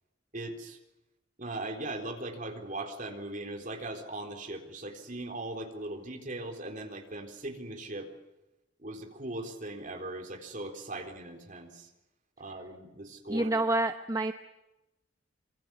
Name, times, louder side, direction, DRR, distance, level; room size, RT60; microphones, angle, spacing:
voice 1, 0.3-0.8 1.4-8.1 8.8-11.9 12.4-13.5, right 2 dB, 40° right, 4 dB, 3.9 m, -39 dB
voice 2, 13.3-14.3, right 2 dB, 15° right, 7 dB, 1.0 m, -28 dB
26.0 x 24.5 x 7.2 m, 0.97 s
head